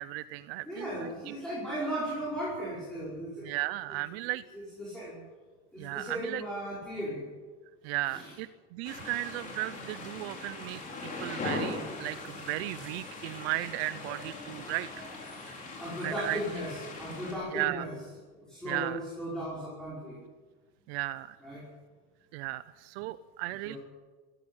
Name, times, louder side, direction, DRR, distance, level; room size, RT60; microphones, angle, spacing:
voice 1, 0.0-1.3 3.4-4.4 5.2-5.3 5.8-6.4 7.8-14.9 15.4-15.6 16.0-16.4 17.5-17.9 18.7-19.0 20.9-21.4 22.3-23.8, right 17 dB, 80° right, 14 dB, 0.7 m, -35 dB
voice 2, 0.6-3.5 4.5-5.1 5.7-7.2 8.1-8.3 15.8-17.9 18.3-20.2 21.4-21.7 23.6-23.8, equal, ahead, -8 dB, 5.3 m, -36 dB
sound 1, 8.8-17.3, left 2 dB, 25° left, 4.5 m, -40 dB
17.5 x 15.0 x 10.0 m, 1.3 s
cardioid pair, 165°, 31 cm